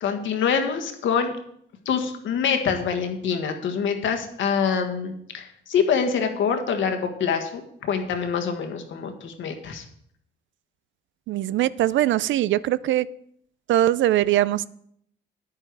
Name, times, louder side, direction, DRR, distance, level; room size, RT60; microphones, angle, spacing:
voice 1, 0.0-1.3 1.8-9.8, left 6 dB, 75° left, 5 dB, 1.6 m, -25 dB
voice 2, 11.3-13.1 13.7-14.7, right 13 dB, 70° right, 19 dB, 0.4 m, -21 dB
10.0 x 9.0 x 4.7 m, 0.69 s
cardioid pair, 90°, 20 cm